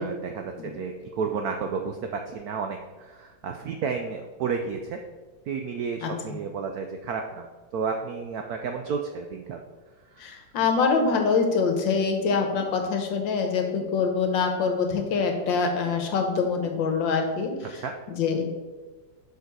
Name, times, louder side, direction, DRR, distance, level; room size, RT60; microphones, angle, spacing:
voice 1, 0.0-2.0 2.3-5.0 5.5-7.4 7.7-9.6 17.7-17.9, right 5 dB, 80° right, 4 dB, 0.8 m, -31 dB
voice 2, 10.2-17.8 18.2-18.4, left 5 dB, 75° left, 4 dB, 1.6 m, -25 dB
6.5 x 5.1 x 4.6 m, 1.3 s
omnidirectional pair, 2.1 m